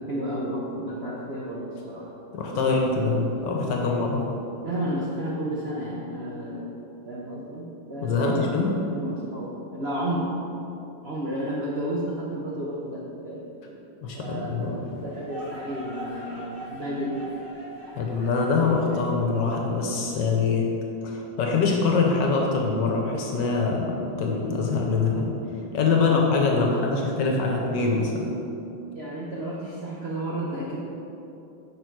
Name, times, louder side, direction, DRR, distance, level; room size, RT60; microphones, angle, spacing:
voice 1, 0.0-2.1 2.5-3.1 3.4-3.9 4.6-6.7 7.1-10.4 11.0-13.5 14.2-17.3 26.0-26.3 26.7-27.4 28.7-30.8, right 1 dB, 70° right, -4 dB, 0.6 m, -32 dB
voice 2, 2.3-4.2 8.0-8.7 14.0-14.9 17.9-20.7 21.0-25.3 25.7-28.3, left 4 dB, 65° left, 0 dB, 1.4 m, -24 dB
sound 1, 14.4-20.3, equal, 55° right, 2.2 m, -42 dB
6.4 x 5.4 x 4.5 m, 2.9 s
omnidirectional pair, 2.2 m